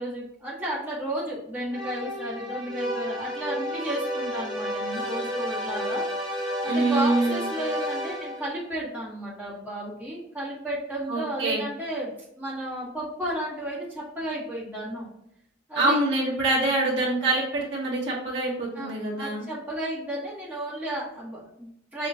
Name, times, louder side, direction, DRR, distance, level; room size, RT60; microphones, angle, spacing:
voice 1, 0.0-6.1 6.6-15.1 15.7-16.0 16.9-17.0 18.7-22.1, right 1 dB, 10° right, -9 dB, 1.6 m, -33 dB
sound 1, 1.7-8.6, equal, 25° right, 1.5 m, -31 dB
voice 2, 6.7-7.4 11.1-11.6 15.7-19.4, right 2 dB, 65° right, -6 dB, 1.6 m, -25 dB
6.3 x 3.0 x 2.7 m, 0.77 s
head